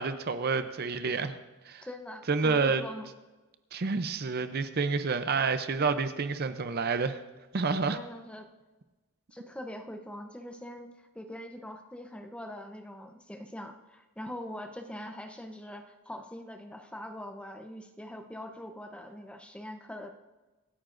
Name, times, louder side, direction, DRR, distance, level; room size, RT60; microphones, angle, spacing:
voice 1, 0.0-1.3 1.7-1.9 2.3-2.8 3.7-7.2 7.5-8.0, right 4 dB, 45° right, 10 dB, 0.6 m, -29 dB
voice 2, 1.8-3.1 7.9-8.5 9.3-20.1, left 1 dB, 5° left, 5 dB, 0.7 m, -43 dB
25.5 x 9.6 x 2.6 m, 1.2 s
head